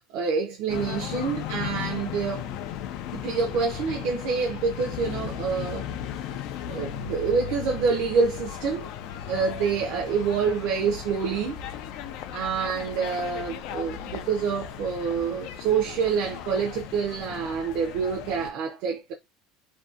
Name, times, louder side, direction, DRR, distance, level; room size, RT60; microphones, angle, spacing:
voice 1, 0.1-2.5 3.2-5.9 6.7-8.9 9.3-11.6 12.3-19.1, right 5 dB, 60° right, 0.5 m, -27 dB
sound 1, 0.7-18.5, left 10 dB, 60° left, 0.3 m, -36 dB
2.6 x 2.2 x 2.4 m
cardioid pair, 145°, 0 cm